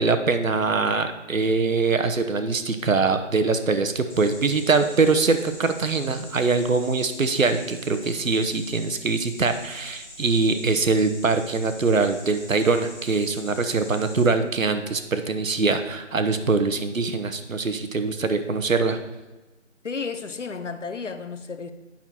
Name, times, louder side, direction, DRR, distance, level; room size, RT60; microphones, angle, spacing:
voice 1, 0.0-19.0, right 4 dB, 85° right, 1.1 m, -23 dB
sound 1, 4.1-14.2, left 1 dB, 10° left, 1.4 m, -44 dB
voice 2, 19.8-21.7, left 5 dB, 65° left, 0.8 m, -32 dB
8.8 x 5.8 x 4.4 m
figure-of-eight pair, 175°, 39 cm